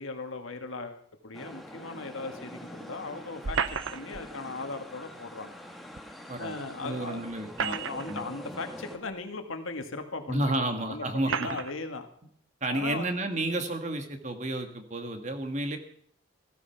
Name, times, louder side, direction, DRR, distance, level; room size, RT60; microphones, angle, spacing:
voice 1, 0.0-5.5 6.4-7.2 7.6-12.1 12.7-13.1, left 3 dB, 85° left, 6 dB, 1.9 m, -38 dB
sound 1, 1.3-9.0, equal, ahead, 1.6 m, -45 dB
sound 2, 3.4-4.3 6.0-6.1 7.3-8.2 9.1-9.2 10.2-10.3 11.2-11.7, right 6 dB, 75° right, 0.8 m, -32 dB
voice 2, 6.8-7.8 8.1-8.2 10.3-11.6 12.6-15.8, right 1 dB, 35° right, 6 dB, 1.8 m, -31 dB
15.5 x 14.0 x 5.8 m, 0.63 s
head